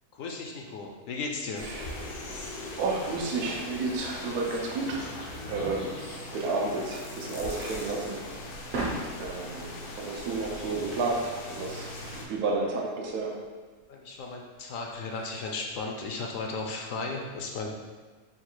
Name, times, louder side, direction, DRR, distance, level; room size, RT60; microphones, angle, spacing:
voice 1, 0.1-1.7 13.9-17.7, left 3 dB, 70° left, 1 dB, 0.9 m, -35 dB
sound 1, 1.6-12.3, left 2 dB, 85° left, 1.2 m, -40 dB
voice 2, 1.6-2.4 2.7-8.2 9.2-9.7 10.0-13.4, right 3 dB, 90° right, -1 dB, 1.2 m, -32 dB
sound 2, 6.1-16.1, right 2 dB, 70° right, 1.3 m, -43 dB
3.9 x 2.4 x 4.4 m, 1.4 s
omnidirectional pair, 1.6 m